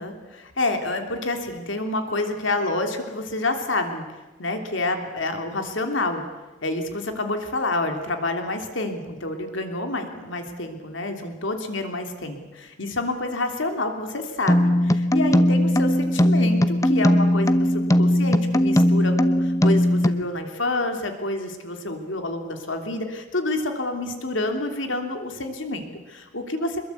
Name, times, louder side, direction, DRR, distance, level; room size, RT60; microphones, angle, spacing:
voice 1, 0.0-4.0 4.4-6.2 6.6-26.8, left 2 dB, 70° left, 5 dB, 3.0 m, -28 dB
sound 1, 14.5-20.2, equal, 15° left, 0.9 m, -19 dB
25.0 x 22.0 x 8.4 m, 1.2 s
head